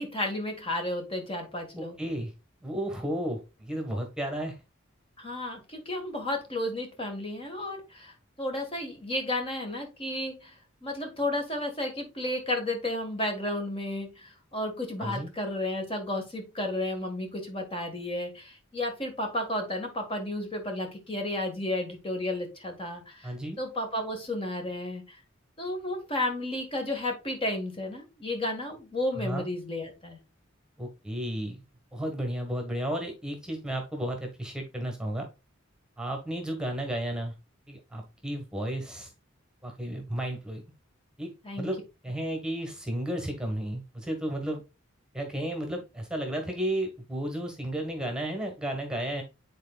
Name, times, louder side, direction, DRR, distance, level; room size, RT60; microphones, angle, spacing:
voice 1, 0.0-1.9 5.2-10.5 10.8-25.2 25.6-30.2 41.4-41.7, left 1 dB, 30° left, 3 dB, 1.6 m, -32 dB
voice 2, 1.8-2.3 2.6-4.5 15.0-15.3 23.2-23.6 29.2-29.5 30.8-31.6 31.9-35.3 36.0-37.3 37.7-39.1 39.6-40.6 41.2-41.8 42.0-44.6 45.1-49.2, right 1 dB, 5° right, 4 dB, 1.5 m, -33 dB
9.6 x 4.3 x 2.3 m, 0.28 s
head